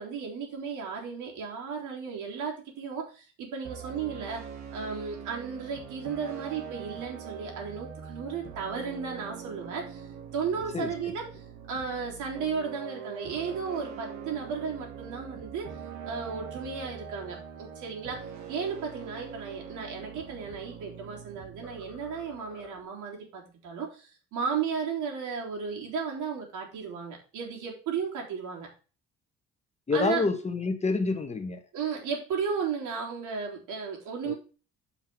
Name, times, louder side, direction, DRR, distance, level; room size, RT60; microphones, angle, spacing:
voice 1, 0.0-10.1 10.3-15.7 16.0-28.7 29.9-30.3 31.7-34.3, right 6 dB, 80° right, 0 dB, 3.7 m, -34 dB
sound 1, 3.6-22.8, right 7 dB, 65° right, 1.9 m, -43 dB
sound 2, 20.2-21.3 21.6-23.0, left 1 dB, 5° right, 4.1 m, -53 dB
voice 2, 29.9-31.6 34.2-34.3, left 4 dB, 20° left, 6 dB, 1.3 m, -28 dB
7.8 x 5.8 x 4.5 m, 0.35 s
cardioid pair, 135°, 30 cm